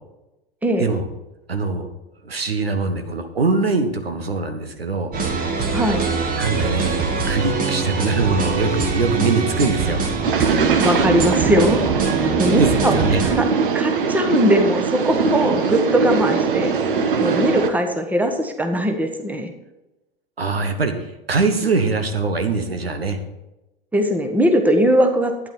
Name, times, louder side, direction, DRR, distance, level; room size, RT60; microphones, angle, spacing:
voice 1, 1.5-1.9 2.2-5.1 6.4-10.0 12.5-13.2 20.4-23.2, right 4 dB, 80° right, 7 dB, 1.4 m, -22 dB
sound 1, 5.1-13.3, right 4 dB, 30° right, 1.9 m, -23 dB
voice 2, 5.7-6.0 10.4-10.5 10.8-11.8 12.1-12.9 13.4-13.5 13.7-16.7 17.2-19.5 23.9-25.3, equal, 5° right, 5 dB, 1.3 m, -20 dB
sound 2, 10.2-17.7, right 5 dB, 60° right, 1.4 m, -21 dB
12.0 x 9.7 x 4.4 m, 0.98 s
figure-of-eight pair, 90°, 30 cm